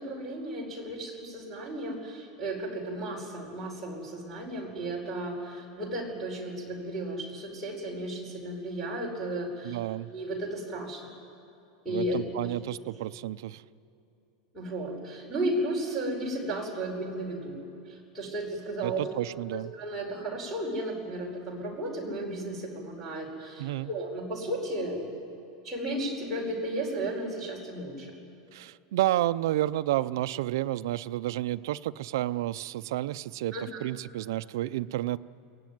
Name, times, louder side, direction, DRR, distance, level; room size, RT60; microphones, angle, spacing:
voice 1, 0.0-9.8 10.1-11.1 11.8-12.2 12.4-12.5 14.5-17.6 17.9-19.0 19.8-25.0 25.6-28.1 33.5-33.8, right 1 dB, 5° right, -6 dB, 4.9 m, -34 dB
voice 2, 9.6-10.1 11.9-13.6 18.8-19.7 23.6-23.9 28.5-35.2, right 14 dB, 65° right, 12 dB, 0.6 m, -30 dB
22.5 x 18.5 x 9.4 m, 2.8 s
supercardioid pair, 180°, 2 cm